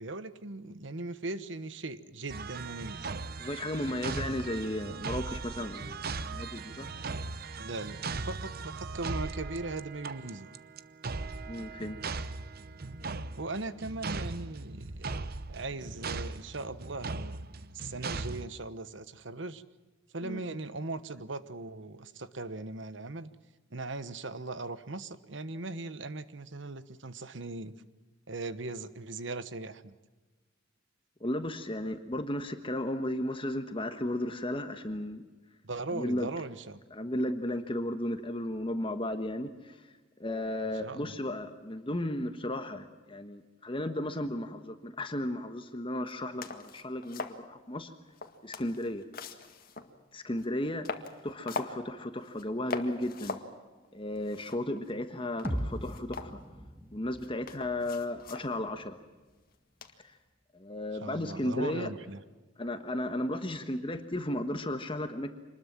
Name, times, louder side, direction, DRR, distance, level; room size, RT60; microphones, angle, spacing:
voice 1, 0.0-3.1 7.6-10.5 13.4-17.5 17.7-19.6 20.1-23.3 23.7-27.8 28.3-29.9 35.6-36.8 40.8-41.1 61.0-62.2, right 2 dB, 65° right, 13 dB, 1.2 m, -39 dB
sound 1, 2.3-18.5, right 3 dB, 50° right, 0.8 m, -38 dB
voice 2, 3.4-6.9 11.5-12.0 20.2-20.4 31.2-35.2 35.9-36.3 36.9-39.8 40.2-47.9 48.4-49.0 50.1-50.9 51.2-53.4 53.9-56.3 56.9-59.0 60.0-60.1 60.5-61.9 62.6-65.3, left 1 dB, 25° left, 8 dB, 1.3 m, -34 dB
sound 2, 46.1-46.2 46.4-47.4 48.1-50.0 50.4-50.5 50.8-51.8 52.2-52.4 52.7-53.5 53.8-53.9 54.2-55.0 55.4-56.7 57.2-58.5 59.8-60.1, left 3 dB, 45° left, 1.9 m, -41 dB
sound 3, 55.4-59.4, equal, 10° right, 1.6 m, -40 dB
26.0 x 20.5 x 7.4 m, 1.2 s
head